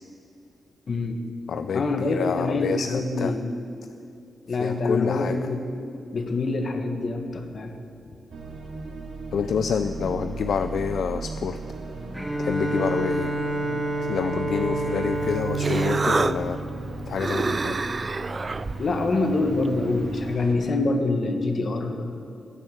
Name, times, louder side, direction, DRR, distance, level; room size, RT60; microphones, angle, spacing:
voice 1, 0.9-1.2 1.7-3.5 4.5-5.6 6.1-7.8 18.8-22.2, left 2 dB, 55° left, 5 dB, 1.7 m, -25 dB
voice 2, 1.5-3.3 4.5-5.4 9.3-11.6 12.4-13.3 14.0-16.6 17.1-17.8, left 7 dB, 75° left, 9 dB, 0.4 m, -28 dB
sound 1, 8.3-20.5, right 3 dB, 80° right, 1.9 m, -37 dB
Bowed string instrument, 12.1-17.4, right 2 dB, 5° right, 2.9 m, -29 dB
Human voice, 15.1-20.3, right 3 dB, 35° right, 0.5 m, -29 dB
15.5 x 8.5 x 7.7 m, 2.8 s
cardioid pair, 80°, 0 cm